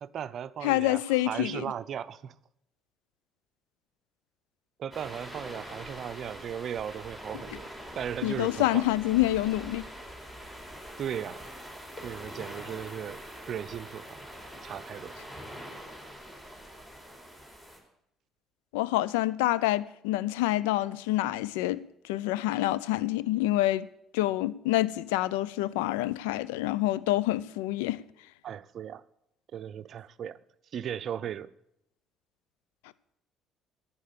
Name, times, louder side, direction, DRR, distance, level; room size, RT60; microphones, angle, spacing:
voice 1, 0.0-2.3 4.8-7.7 7.9-8.9 11.0-11.5 12.0-14.2 14.6-15.2 28.4-29.0 29.5-30.4 30.7-31.5, right 9 dB, 55° right, 0.6 m, -37 dB
voice 2, 0.6-1.7 8.2-9.8 18.7-23.9 24.1-28.0, left 16 dB, 75° left, 0.5 m, -27 dB
sound 1, 4.9-17.8, equal, 15° left, 4.6 m, -44 dB
11.0 x 9.1 x 8.6 m
hypercardioid pair, 50°, 0 cm